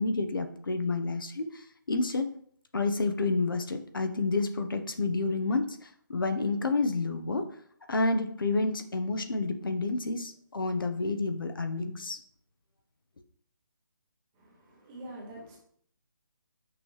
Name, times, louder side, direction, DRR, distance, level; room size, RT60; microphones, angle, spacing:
voice 1, 0.0-2.3 2.7-7.5 7.9-12.2, left 3 dB, 80° left, 6 dB, 1.0 m, -29 dB
voice 2, 14.4-15.6, right 1 dB, 10° right, -3 dB, 0.8 m, -45 dB
6.0 x 5.5 x 3.2 m, 0.63 s
hypercardioid pair, 175°, 11 cm